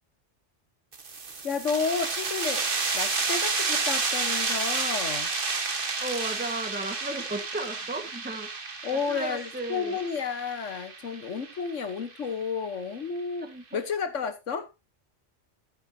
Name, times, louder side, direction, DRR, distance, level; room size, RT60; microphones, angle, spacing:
sound 1, 0.9-12.3, right 4 dB, 45° right, 1.6 m, -31 dB
voice 1, 1.4-2.7 2.9-5.3 8.8-14.7, left 5 dB, 80° left, 1.5 m, -31 dB
voice 2, 6.0-10.0 13.4-13.8, right 2 dB, 10° right, 1.4 m, -35 dB
13.5 x 9.4 x 2.8 m
omnidirectional pair, 1.2 m